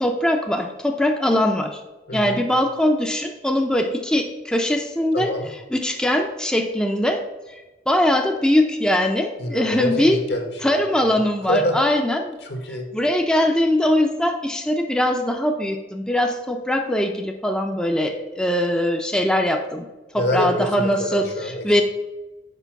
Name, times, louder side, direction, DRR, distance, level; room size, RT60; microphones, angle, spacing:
voice 1, 0.0-1.6 2.1-3.8 4.1-4.2 4.5-5.3 5.8-7.2 7.9-9.3 9.5-10.2 10.6-12.2 13.0-14.3 14.7-15.7 16.1-16.3 16.7-17.1 17.4-18.1 18.4-19.6 20.3-21.2 21.7-21.8, left 1 dB, 5° left, 3 dB, 0.5 m, -20 dB
voice 2, 5.1-5.5 9.4-11.8 12.4-12.9 20.1-21.8, left 1 dB, 70° left, 4 dB, 1.4 m, -26 dB
6.8 x 4.8 x 5.9 m, 1.1 s
head